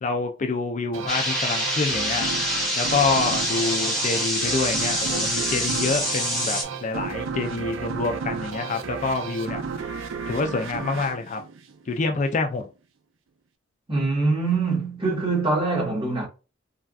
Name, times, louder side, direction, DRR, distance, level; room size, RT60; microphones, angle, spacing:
voice 1, 0.0-2.3 2.8-9.6 10.3-11.4 11.9-12.7, left 4 dB, 40° left, 0.4 m, -27 dB
sound 1, 0.9-12.2, right 5 dB, 80° right, 0.5 m, -33 dB
sound 2, 1.1-6.6, equal, ahead, 0.9 m, -26 dB
voice 2, 13.9-16.3, right 3 dB, 30° right, 1.3 m, -24 dB
3.3 x 2.5 x 2.3 m
head